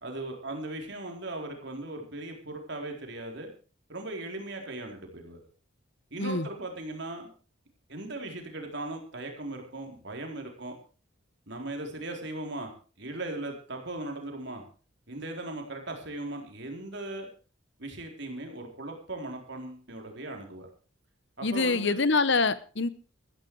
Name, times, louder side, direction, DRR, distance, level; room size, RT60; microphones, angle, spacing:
voice 1, 0.0-3.5 3.9-5.4 6.1-7.3 7.9-10.8 11.5-12.7 13.0-14.6 15.1-17.3 17.8-20.7 21.4-22.0, right 2 dB, 55° right, 3 dB, 4.1 m, -38 dB
voice 2, 21.4-22.9, left 3 dB, 60° left, 15 dB, 1.1 m, -25 dB
14.5 x 14.5 x 4.8 m, 0.37 s
head